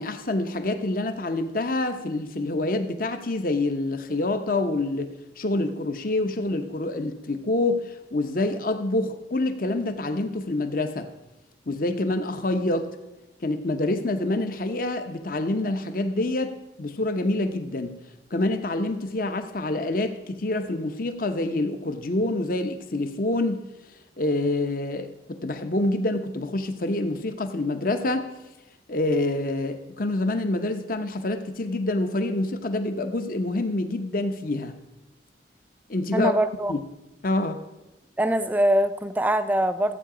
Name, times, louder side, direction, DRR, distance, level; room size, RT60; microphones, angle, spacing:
voice 1, 0.0-11.1 11.7-12.9 13.4-18.0 18.3-23.6 24.2-28.3 28.9-34.7 35.9-36.3 36.7-36.8 37.2-37.6, left 2 dB, 50° left, 0.9 m, -27 dB
voice 2, 36.1-36.7 38.2-40.0, right 1 dB, 10° right, 0.4 m, -23 dB
14.5 x 8.4 x 5.0 m
head